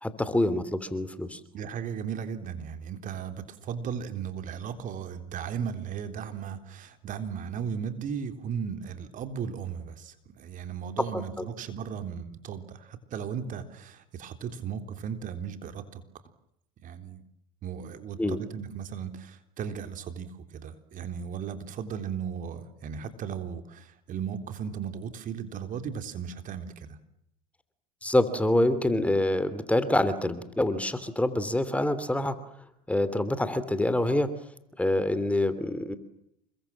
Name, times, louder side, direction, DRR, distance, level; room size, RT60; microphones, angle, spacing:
voice 1, 0.0-1.4 11.1-11.5 18.2-18.4 28.0-32.3 32.9-34.3 34.8-36.0, left 1 dB, 5° left, 13 dB, 3.0 m, -26 dB
voice 2, 1.5-16.0 16.8-17.2 17.6-20.3 20.5-27.0, right 7 dB, 45° right, 8 dB, 3.7 m, -36 dB
29.0 x 23.0 x 7.5 m, 0.77 s
hypercardioid pair, 80°, 19 cm